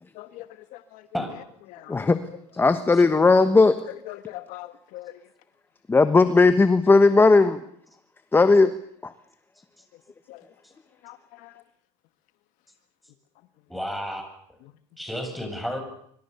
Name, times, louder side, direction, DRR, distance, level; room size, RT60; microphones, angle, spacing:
voice 1, 0.1-0.5 0.7-1.0 1.7-2.0 4.1-5.2 10.3-10.4 11.0-11.5, left 16 dB, 65° left, 1.2 m, -41 dB
voice 2, 2.5-3.8 5.9-7.6 8.3-8.7 9.0-9.1, left 3 dB, 15° left, 1.2 m, -17 dB
voice 3, 13.7-14.2 15.0-15.8, equal, ahead, 7.6 m, -31 dB
25.0 x 25.0 x 6.9 m
supercardioid pair, 115°, 14 cm